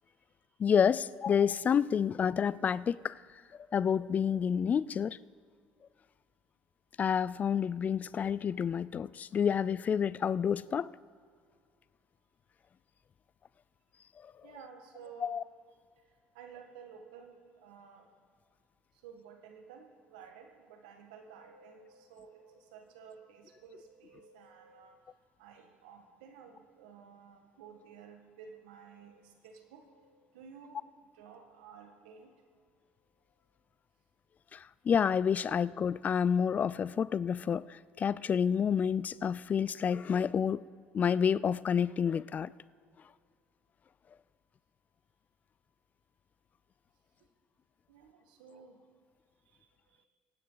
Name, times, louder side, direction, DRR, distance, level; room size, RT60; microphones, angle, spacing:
voice 1, 0.6-3.1 3.7-5.2 7.0-10.9 14.2-14.3 15.2-15.4 34.5-40.6 40.9-42.5, left 7 dB, 40° left, 0.4 m, -29 dB
voice 2, 14.4-15.4 16.3-18.1 19.0-30.8 31.1-32.3 47.9-48.8 49.4-50.1, right 6 dB, 90° right, 1.7 m, -53 dB
24.5 x 9.4 x 4.0 m
supercardioid pair, 80°, 4 cm